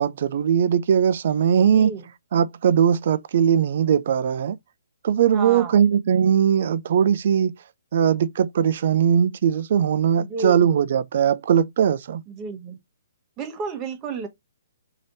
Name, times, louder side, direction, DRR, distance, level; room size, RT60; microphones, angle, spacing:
voice 1, 0.0-1.9 2.3-4.6 5.0-7.5 7.9-12.2, right 8 dB, 55° right, 0.3 m, -20 dB
voice 2, 1.6-2.1 5.3-5.8 10.2-10.7 12.3-12.8 13.4-14.3, right 4 dB, 20° right, 1.0 m, -32 dB
3.3 x 2.8 x 3.9 m
hypercardioid pair, 150°, 0 cm